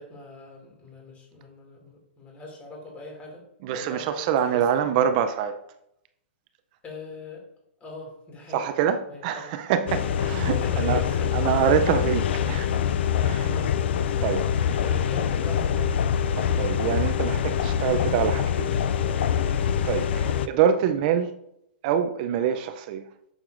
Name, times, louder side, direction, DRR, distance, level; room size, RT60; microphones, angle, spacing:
voice 1, 0.0-3.4 3.8-4.9 6.8-7.4 7.8-8.7 9.1-9.6 10.0-11.8 13.3-13.8 14.8-15.9 20.2-20.8, left 2 dB, 20° left, 2.5 m, -41 dB
voice 2, 3.6-5.6 8.5-11.0 11.3-12.7 13.2-13.5 14.2-14.8 16.3-18.7 19.5-21.3 21.8-23.1, right 8 dB, 45° right, 0.5 m, -25 dB
sound 1, 9.9-20.5, left 8 dB, 70° left, 0.4 m, -25 dB
9.0 x 6.5 x 2.6 m
hypercardioid pair, 140°, 6 cm